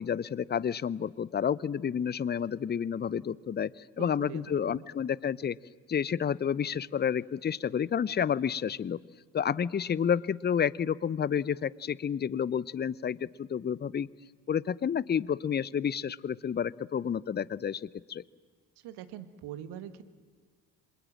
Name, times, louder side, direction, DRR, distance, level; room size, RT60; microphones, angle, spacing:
voice 1, 0.0-5.6 5.9-9.0 9.3-14.1 14.5-18.2, left 8 dB, 20° left, 22 dB, 0.7 m, -30 dB
voice 2, 4.0-4.8 18.8-20.0, right 11 dB, 60° right, 12 dB, 1.8 m, -43 dB
27.0 x 26.5 x 7.6 m, 1.6 s
figure-of-eight pair, 45°, 45 cm